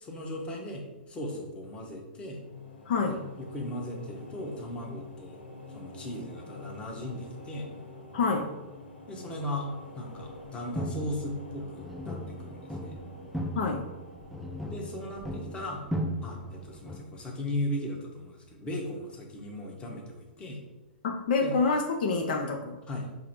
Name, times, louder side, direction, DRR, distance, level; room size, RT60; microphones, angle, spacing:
voice 1, 0.0-2.4 3.1-5.4 5.7-7.7 9.1-13.0 14.7-15.8 16.2-20.6 21.4-21.5 22.9-23.3, left 1 dB, 20° left, 0 dB, 0.9 m, -37 dB
sound 1, 2.1-17.4, left 3 dB, 85° left, 0.9 m, -47 dB
voice 2, 2.9-3.2 8.1-8.5 13.5-13.8 21.0-22.8, left 4 dB, 60° left, 2 dB, 0.6 m, -27 dB
sound 2, 10.1-10.4 10.8-17.0, equal, ahead, 0.3 m, -37 dB
4.9 x 2.0 x 4.3 m, 1.1 s
hypercardioid pair, 120°, 5 cm